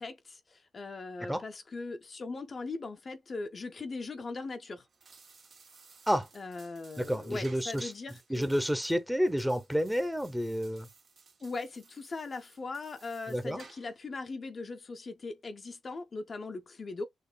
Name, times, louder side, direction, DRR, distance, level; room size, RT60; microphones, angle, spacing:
voice 1, 0.0-4.9 6.4-8.5 11.4-17.1, left 3 dB, 40° left, 0.5 m, -40 dB
sound 1, 4.8-14.1, right 4 dB, 55° right, 1.5 m, -57 dB
voice 2, 7.0-7.9 8.3-10.9 13.3-13.6, equal, 5° right, 0.7 m, -30 dB
6.5 x 2.9 x 2.2 m
wide cardioid pair, 120°, 0 cm